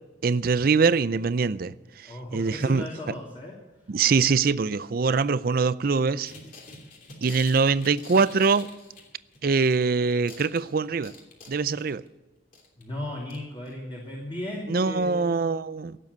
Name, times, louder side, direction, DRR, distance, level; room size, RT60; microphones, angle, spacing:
voice 1, 0.2-2.9 3.9-6.3 7.2-8.7 9.4-11.1 11.5-12.0 14.7-16.0, right 4 dB, 50° right, 0.5 m, -23 dB
voice 2, 2.0-3.6 12.8-15.3, left 1 dB, 25° left, 2.8 m, -36 dB
sound 1, 6.3-9.9 10.1-12.1 12.5-12.8 13.3-13.4 13.7-13.8, left 3 dB, 45° left, 3.0 m, -46 dB
17.0 x 7.6 x 9.5 m
head